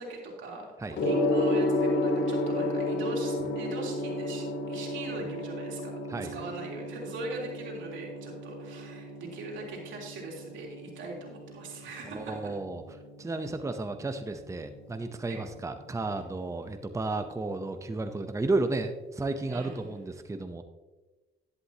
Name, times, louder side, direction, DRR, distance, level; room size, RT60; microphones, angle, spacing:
voice 1, 0.0-5.9 6.3-12.3 15.3-15.4 19.4-19.9, right 2 dB, 80° right, -1 dB, 3.3 m, -40 dB
Gong, 0.9-20.0, left 1 dB, 65° left, 2.8 m, -34 dB
voice 2, 12.0-12.8 13.2-20.6, right 2 dB, 15° right, 8 dB, 0.7 m, -33 dB
11.0 x 11.0 x 2.9 m, 1.2 s
cardioid pair, 90°, 20 cm